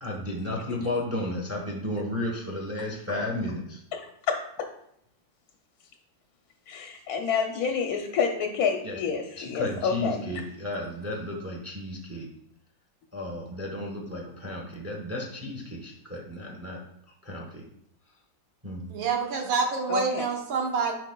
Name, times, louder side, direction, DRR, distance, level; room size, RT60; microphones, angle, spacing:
voice 1, 0.0-3.8 8.8-9.0 9.4-12.3 13.1-16.8 17.2-17.6 18.6-18.9, left 1 dB, 15° right, -1 dB, 0.5 m, -33 dB
voice 2, 3.9-4.7 6.7-10.2 19.9-20.3, left 6 dB, 70° left, 4 dB, 0.9 m, -28 dB
voice 3, 18.9-20.9, right 5 dB, 85° right, 2 dB, 1.8 m, -27 dB
10.5 x 5.0 x 2.2 m, 0.70 s
omnidirectional pair, 2.1 m